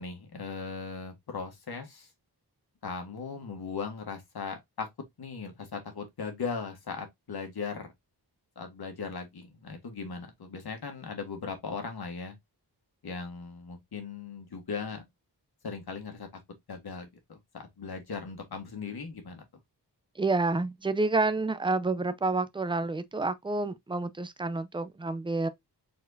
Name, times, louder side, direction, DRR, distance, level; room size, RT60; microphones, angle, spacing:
voice 1, 0.0-2.1 2.8-4.9 5.2-7.9 8.5-12.3 13.0-15.0 15.6-16.3 16.7-19.4, left 5 dB, 65° left, 1.5 m, -38 dB
voice 2, 20.2-25.5, right 3 dB, 10° right, 0.5 m, -29 dB
4.3 x 4.2 x 2.6 m
wide cardioid pair, 125°, 41 cm